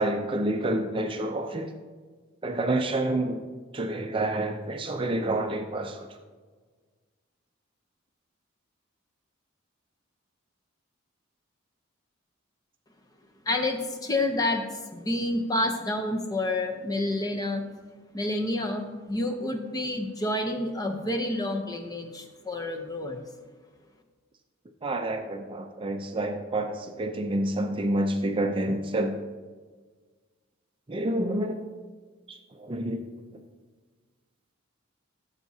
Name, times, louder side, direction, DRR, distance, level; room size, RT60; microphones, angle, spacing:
voice 1, 0.0-1.7 2.4-3.4 3.7-6.1 24.8-29.2 30.9-31.6 32.3-33.0, right 1 dB, 25° right, 4 dB, 0.5 m, -28 dB
voice 2, 13.5-17.6 18.1-23.2, left 1 dB, 20° left, 4 dB, 0.7 m, -29 dB
14.0 x 7.0 x 2.8 m, 1.4 s
head